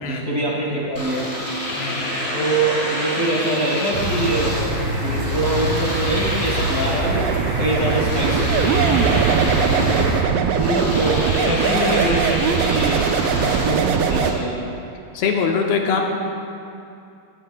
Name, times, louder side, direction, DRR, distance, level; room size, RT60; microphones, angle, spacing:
voice 1, 0.0-1.3 2.3-4.7 4.9-7.3 7.6-10.1 10.5-13.0 13.4-14.5, right 1 dB, 35° left, -5 dB, 1.5 m, -24 dB
Domestic sounds home sounds, 0.9-14.4, equal, 15° left, 3.6 m, -28 dB
voice 2, 1.8-2.1 13.2-13.7 15.1-16.0, left 5 dB, 85° left, 0 dB, 3.2 m, -23 dB
sound 1, 3.9-10.2, right 1 dB, 50° right, 3.5 m, -25 dB
sound 2, 7.0-14.3, right 8 dB, 80° right, 2.2 m, -21 dB
19.5 x 16.0 x 2.3 m, 2.6 s
omnidirectional pair, 4.5 m